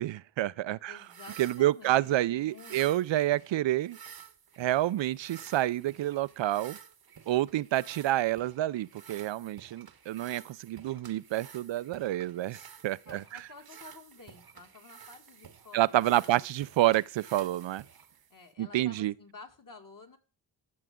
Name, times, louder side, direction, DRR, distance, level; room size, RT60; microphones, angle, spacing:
voice 1, 0.0-1.0 1.4-4.0 4.6-6.8 7.3-12.6 12.8-13.2 15.7-17.8 18.6-19.1, right 14 dB, 70° right, 0.5 m, -28 dB
voice 2, 0.9-3.4 13.1-16.7 18.3-20.2, left 3 dB, 45° left, 2.2 m, -52 dB
sound 1, 0.9-18.5, right 7 dB, 50° right, 1.0 m, -52 dB
14.0 x 6.6 x 3.7 m
cardioid pair, 50°, 46 cm